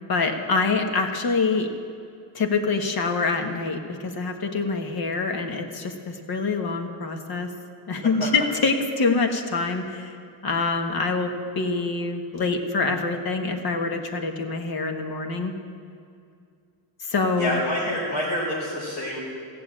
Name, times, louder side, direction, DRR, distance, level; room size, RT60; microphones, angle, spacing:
voice 1, 0.1-1.7 2.3-7.5 7.9-10.1 10.4-15.5 17.0-17.6, left 4 dB, 50° left, 4 dB, 1.6 m, -25 dB
voice 2, 17.4-19.2, left 1 dB, 80° left, -7 dB, 4.2 m, -27 dB
15.5 x 6.9 x 8.8 m, 2.4 s
cardioid pair, 85°, 47 cm